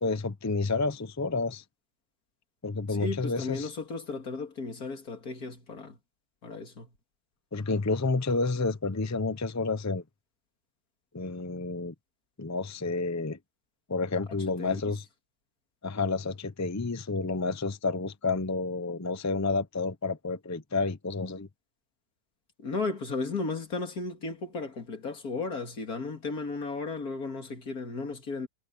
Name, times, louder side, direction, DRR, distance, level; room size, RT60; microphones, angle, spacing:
voice 1, 0.0-1.6 2.6-3.7 7.5-10.0 11.1-11.9 12.4-13.4 13.9-15.0 15.8-21.5, left 3 dB, 15° left, 0.6 m, -30 dB
voice 2, 2.9-6.0 6.4-6.9 14.6-14.8 22.6-28.5, left 3 dB, 75° left, 2.9 m, -35 dB
omnidirectional pair, 1.6 m